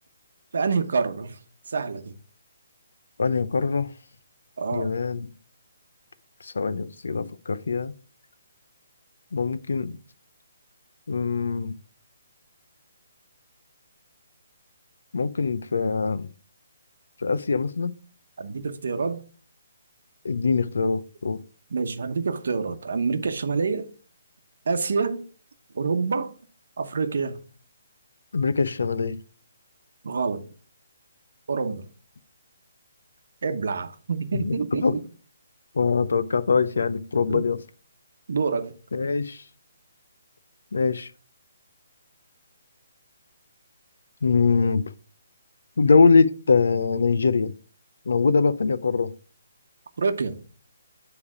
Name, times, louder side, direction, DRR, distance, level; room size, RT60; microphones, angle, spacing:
voice 1, 0.5-1.4 1.7-2.1 4.6-4.9 18.4-19.2 21.7-23.9 24.7-25.2 25.7-26.3 26.8-27.4 30.0-30.4 31.5-31.8 33.4-35.0 37.3-37.4 38.3-38.7 50.0-50.3, right 4 dB, 60° right, 0.9 m, -27 dB
voice 2, 3.2-3.9 4.7-5.3 6.4-7.9 9.3-10.0 11.1-11.7 15.1-16.3 17.2-17.9 20.2-21.4 28.3-29.2 34.3-35.0 35.7-37.6 38.9-39.4 40.7-41.1 44.2-44.8 45.8-47.5 48.1-49.1, left 4 dB, 75° left, 0.6 m, -23 dB
9.7 x 3.4 x 4.9 m
hypercardioid pair, 175°, 0 cm